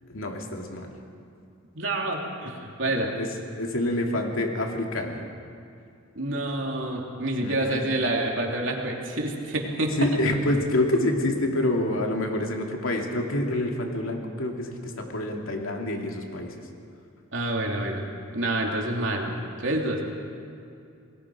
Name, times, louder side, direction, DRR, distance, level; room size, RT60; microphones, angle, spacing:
voice 1, 0.0-1.0 2.9-3.3 3.5-5.3 7.4-7.8 10.0-16.7, left 1 dB, 85° left, 1 dB, 2.6 m, -27 dB
voice 2, 1.7-3.1 6.1-10.1 17.3-18.0 18.3-20.1, right 1 dB, 65° right, 0 dB, 3.1 m, -28 dB
28.5 x 20.5 x 5.0 m, 2.5 s
head